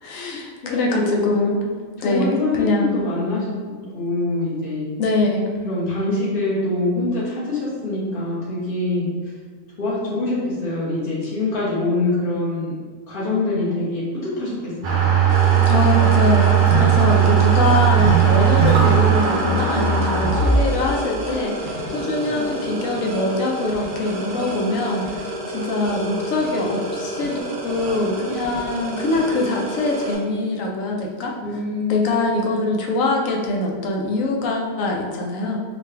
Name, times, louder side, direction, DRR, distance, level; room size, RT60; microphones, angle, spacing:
voice 1, 0.0-1.6 2.0-3.0 5.0-5.6 15.7-31.3 31.9-35.6, left 2 dB, 80° left, 0 dB, 1.0 m, -23 dB
voice 2, 0.6-1.3 2.0-4.9 5.6-9.3 9.8-12.7 13.1-15.1 31.4-32.4, left 2 dB, 45° left, -7 dB, 1.1 m, -25 dB
sound 1, 14.8-23.0, right 7 dB, 70° right, 1.0 m, -18 dB
sound 2, 15.3-30.1, right 1 dB, 55° right, 0.6 m, -30 dB
3.7 x 2.2 x 3.2 m, 1.5 s
omnidirectional pair, 1.4 m